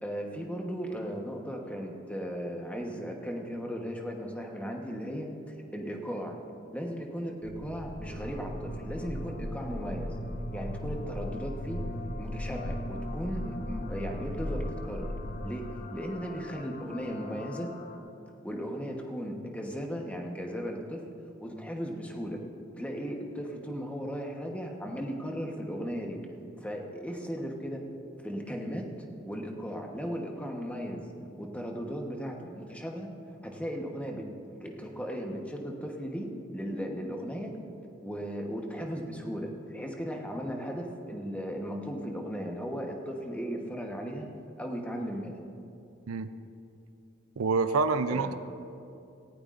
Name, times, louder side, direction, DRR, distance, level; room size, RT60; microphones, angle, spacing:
voice 1, 0.0-6.4 6.7-10.1 10.5-11.9 12.2-15.1 15.4-15.7 15.9-17.7 18.4-21.0 21.4-22.4 22.8-26.2 26.6-27.8 28.2-28.9 29.2-31.1 31.4-33.1 33.4-34.3 34.6-37.6 38.0-44.3 44.6-45.4 48.1-48.3, equal, 5° left, 1 dB, 1.0 m, -36 dB
sound 1, 7.4-15.4, left 1 dB, 85° left, 1.1 m, -38 dB
sound 2, 8.0-18.0, left 1 dB, 40° left, 1.0 m, -42 dB
voice 2, 47.4-48.3, right 4 dB, 90° right, 11 dB, 0.5 m, -27 dB
18.5 x 14.5 x 2.5 m, 2.7 s
head